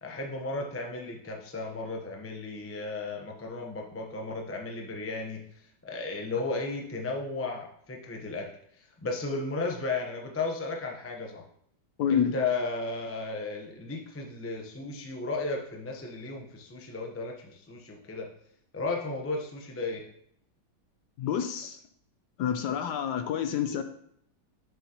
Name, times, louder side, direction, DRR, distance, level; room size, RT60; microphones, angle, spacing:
voice 1, 0.0-5.4 5.8-8.5 8.8-11.4 12.1-18.3 18.7-20.0, left 3 dB, 15° left, 0 dB, 0.4 m, -34 dB
voice 2, 12.0-12.3 21.2-21.8 22.4-23.8, left 8 dB, 70° left, 8 dB, 1.1 m, -28 dB
7.3 x 7.0 x 3.0 m, 0.67 s
omnidirectional pair, 2.1 m